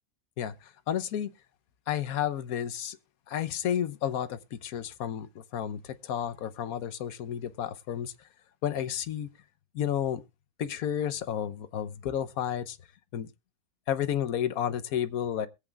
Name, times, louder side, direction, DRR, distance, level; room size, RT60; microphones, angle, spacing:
voice 1, 0.4-1.3 1.9-3.0 3.3-8.1 8.6-9.3 9.7-10.2 10.6-12.8 13.1-13.3 13.9-15.5, left 9 dB, 75° left, 1.3 m, -31 dB
21.5 x 8.1 x 2.3 m
omnidirectional pair, 1.6 m